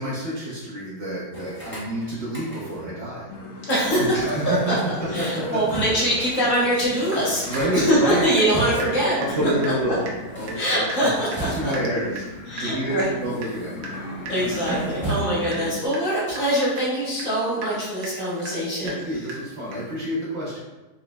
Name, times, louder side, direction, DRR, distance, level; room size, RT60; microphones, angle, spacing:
voice 1, 0.0-3.3 3.5-3.7 4.0-4.9 5.2-5.6 7.5-8.8 9.2-10.1 10.3-10.6 11.0-11.1 11.5-14.0 14.5-14.8 18.8-20.6, right 1 dB, 55° right, -8 dB, 0.8 m, -28 dB
sound 1, 1.3-2.9 4.2-6.2 6.5-6.6 6.8-9.1 10.1-12.0 12.7-14.0 14.3-15.7, right 2 dB, 10° left, 0.9 m, -36 dB
sound 2, 3.3-15.9, left 3 dB, 85° left, 1.3 m, -37 dB
voice 2, 3.7-4.7 5.1-9.2 9.4-9.5 10.5-11.7 12.5-13.1 14.3-19.2, equal, 55° left, -7 dB, 1.3 m, -23 dB
Water tap faucet / Drip, 6.7-6.8 7.1-8.5 8.8-8.9 9.2-9.4 9.6-9.8 10.1-10.2 10.5-20.0, right 2 dB, 75° right, 1.2 m, -38 dB
3.9 x 3.0 x 2.2 m, 1.1 s
omnidirectional pair, 1.8 m